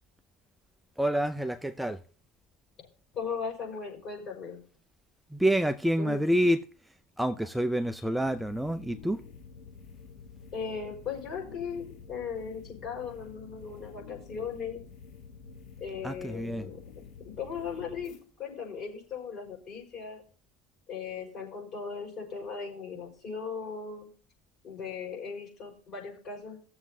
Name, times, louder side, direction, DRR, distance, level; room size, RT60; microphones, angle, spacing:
voice 1, 1.0-2.0 5.3-6.6 7.2-9.2 16.0-16.7, equal, 5° right, 0.5 m, -27 dB
voice 2, 3.1-4.6 6.0-6.2 10.5-14.8 15.8-18.1 18.4-20.2 20.9-24.1 24.6-26.6, left 6 dB, 45° left, 4.8 m, -38 dB
sound 1, 8.1-18.2, left 5 dB, 60° left, 4.1 m, -49 dB
17.0 x 7.2 x 2.7 m
hypercardioid pair, 80°, 0 cm